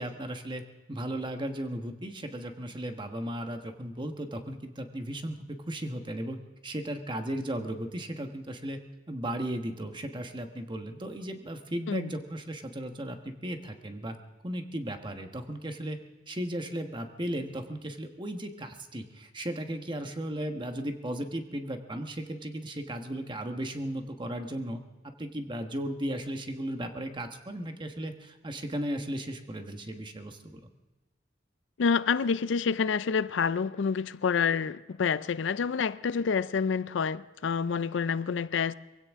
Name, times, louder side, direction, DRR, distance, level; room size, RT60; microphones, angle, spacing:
voice 1, 0.0-6.4 6.6-8.8 9.1-14.2 14.4-16.0 16.3-30.6, right 1 dB, 25° right, 1.2 m, -36 dB
voice 2, 31.8-38.7, left 6 dB, 80° left, 0.4 m, -28 dB
23.0 x 16.0 x 3.6 m
head